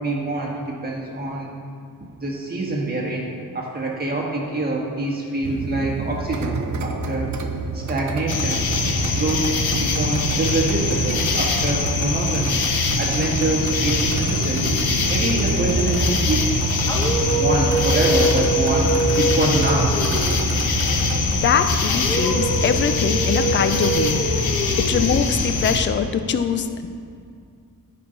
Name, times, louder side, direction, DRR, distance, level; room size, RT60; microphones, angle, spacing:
voice 1, 0.0-1.5 2.2-7.3 7.7-8.7 9.1-9.5 9.7-12.6 13.0-14.7 15.1-16.6 17.4-19.9, right 2 dB, 25° right, -2 dB, 1.5 m, -25 dB
sound 1, 5.4-21.5, right 4 dB, 45° right, 0.7 m, -28 dB
sound 2, 8.3-25.8, left 4 dB, 70° left, 1.0 m, -23 dB
sound 3, 16.8-20.5 21.9-25.5, right 2 dB, 10° left, 1.1 m, -25 dB
voice 2, 21.3-24.2 24.8-26.9, left 6 dB, 30° left, 9 dB, 0.4 m, -22 dB
14.0 x 5.6 x 3.9 m, 2.3 s
wide cardioid pair, 150°, 39 cm